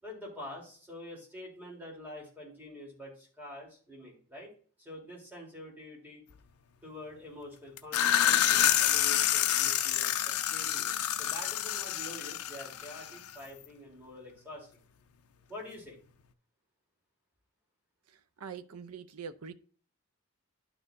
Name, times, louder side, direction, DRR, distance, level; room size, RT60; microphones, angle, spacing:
voice 1, 0.0-4.5 4.8-6.2 6.8-14.8 15.5-16.0, left 1 dB, 10° right, 3.3 m, -46 dB
sound 1, 7.8-13.4, left 11 dB, 90° left, 0.5 m, -28 dB
voice 2, 18.4-19.5, right 6 dB, 90° right, 0.6 m, -43 dB
11.5 x 6.1 x 2.6 m
head